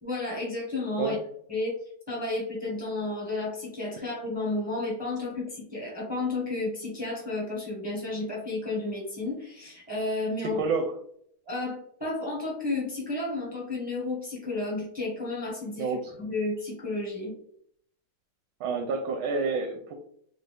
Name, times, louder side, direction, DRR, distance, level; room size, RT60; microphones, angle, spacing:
voice 1, 0.0-1.2 1.5-1.7 2.1-10.6 11.5-17.3, left 2 dB, 5° right, -4 dB, 1.0 m, -32 dB
voice 2, 10.5-10.9 15.8-16.2 18.6-20.0, right 4 dB, 80° right, 4 dB, 1.3 m, -29 dB
4.0 x 2.5 x 3.4 m, 0.66 s
omnidirectional pair, 2.3 m